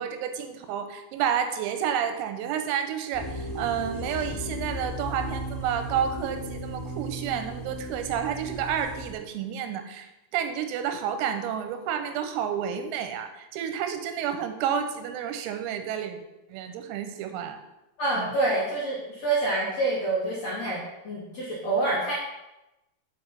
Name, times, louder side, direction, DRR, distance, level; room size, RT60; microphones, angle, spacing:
voice 1, 0.0-16.2 16.5-17.6 18.2-18.3, right 8 dB, 90° right, 7 dB, 3.5 m, -30 dB
sound 1, 3.1-9.1, right 1 dB, 30° left, 1.9 m, -36 dB
voice 2, 18.0-20.8 21.0-22.1, right 2 dB, 55° left, -8 dB, 1.9 m, -27 dB
7.8 x 5.3 x 5.7 m, 0.96 s
omnidirectional pair, 5.9 m